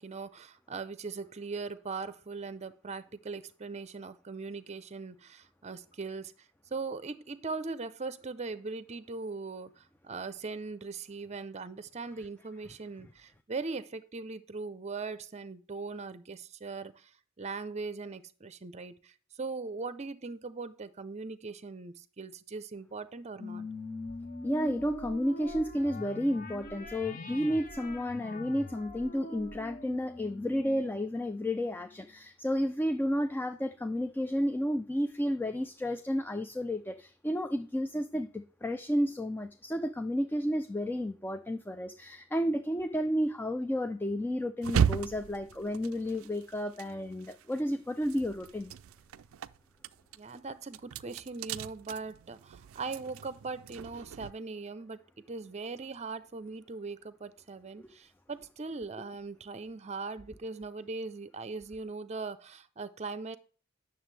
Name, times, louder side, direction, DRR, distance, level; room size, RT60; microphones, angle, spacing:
voice 1, 0.0-6.3 6.7-17.1 17.4-23.7 50.1-55.0 55.3-63.4, right 4 dB, 35° right, 0.6 m, -40 dB
sound 1, 23.4-32.2, left 2 dB, 40° left, 1.0 m, -44 dB
voice 2, 24.4-48.7 57.8-57.9, equal, 10° left, 0.4 m, -32 dB
sound 2, 44.6-47.6 47.9-54.3, right 7 dB, 80° right, 0.4 m, -35 dB
9.3 x 6.7 x 3.3 m
head